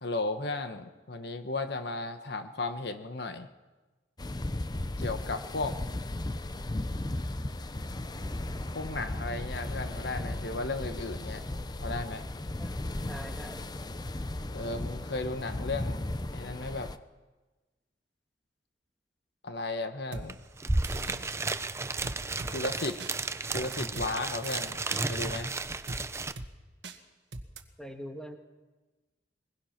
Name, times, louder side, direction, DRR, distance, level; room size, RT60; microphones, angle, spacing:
voice 1, 0.0-3.5 5.0-5.8 8.7-11.4 11.8-12.2 14.5-16.9 19.4-20.4 20.9-21.3 22.5-23.0 23.5-24.8 25.0-25.5, left 3 dB, 60° left, 8 dB, 1.2 m, -35 dB
sound 1, 4.2-17.0, left 1 dB, 25° left, 0.6 m, -36 dB
voice 2, 13.1-13.6 27.8-28.4, equal, 5° left, 5 dB, 1.5 m, -42 dB
sound 2, 20.1-20.3 20.8-21.2 22.0-22.5 23.0-23.1 23.7-24.1 24.4-25.0 25.9-26.0 26.4-26.5 26.8-27.0 27.3-27.6, right 2 dB, 65° right, 1.7 m, -40 dB
sound 3, 20.3-20.4 20.6-26.3, right 3 dB, 15° right, 0.6 m, -33 dB
22.5 x 21.0 x 5.9 m, 1.2 s
head